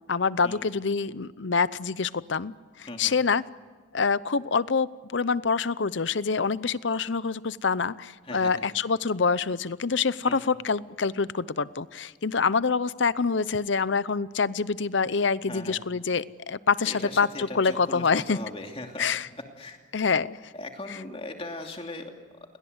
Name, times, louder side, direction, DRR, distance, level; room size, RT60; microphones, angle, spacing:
voice 1, 0.1-3.4 3.9-18.4 19.0-19.3 19.9-20.4, left 5 dB, 70° left, 17 dB, 0.7 m, -26 dB
voice 2, 8.2-8.7 10.2-10.5 15.5-15.8 16.9-19.0 19.6-19.9 20.5-22.1, left 2 dB, 30° left, 3 dB, 2.7 m, -39 dB
30.0 x 23.0 x 8.1 m, 1.5 s
head